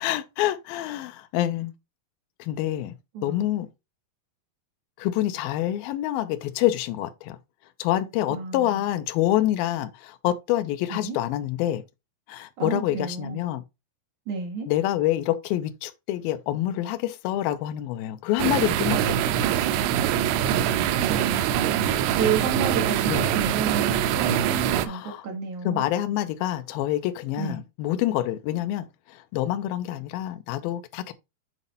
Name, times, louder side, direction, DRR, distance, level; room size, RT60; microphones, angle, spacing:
voice 1, 0.0-1.7 2.4-3.0 3.2-3.7 5.0-7.4 7.8-11.8 12.3-13.6 14.7-19.4 23.1-23.3 24.8-25.2 25.6-31.1, left 13 dB, 80° left, 2.2 m, -27 dB
voice 2, 3.1-3.5 8.3-8.8 11.0-11.2 12.6-13.4 14.3-14.7 20.5-21.6 21.8-25.9 27.4-27.6, right 6 dB, 60° right, 2.3 m, -31 dB
sound 1, 18.4-24.9, right 10 dB, 90° right, 2.8 m, -23 dB
8.2 x 4.2 x 4.0 m
omnidirectional pair, 4.9 m